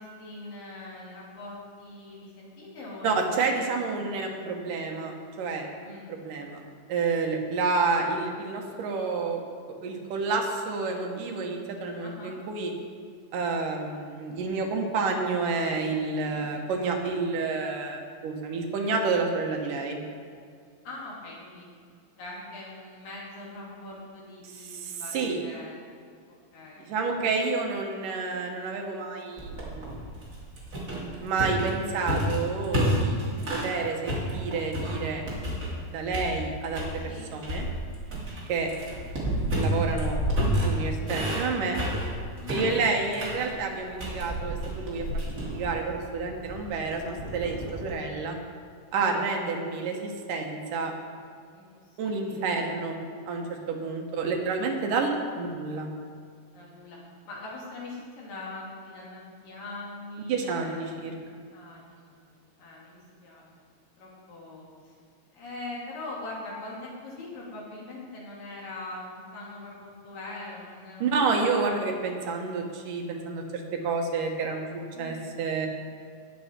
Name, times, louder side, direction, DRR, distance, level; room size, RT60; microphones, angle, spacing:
voice 1, 0.0-3.6 5.8-6.2 12.0-12.4 16.3-16.4 20.8-21.7 22.2-25.8 26.5-26.9 33.0-33.4 37.1-37.3 38.7-39.0 42.4-42.7 48.9-49.4 51.5-52.9 54.2-54.5 56.5-57.0 57.2-61.1 61.5-63.5 64.0-64.9 65.3-71.2 71.6-71.8 74.9-75.3, left 2 dB, 80° left, -5 dB, 4.3 m, -42 dB
voice 2, 3.0-5.7 6.1-6.6 6.9-9.4 9.8-12.7 13.3-20.0 24.7-25.4 26.8-30.0 31.2-33.2 33.5-35.2 35.9-37.0 37.3-37.7 38.5-38.7 39.6-40.2 40.6-41.8 42.5-45.1 45.4-48.4 48.9-50.9 52.0-53.0 53.3-55.9 60.3-61.1 71.0-73.4 73.8-74.7 75.0-75.7, right 4 dB, 75° right, 2 dB, 2.8 m, -29 dB
sound 1, 29.4-33.7 34.1-35.8 36.1-37.0 37.4-47.9, equal, 25° right, 2.7 m, -30 dB
18.0 x 7.1 x 4.4 m, 2.2 s
omnidirectional pair, 3.8 m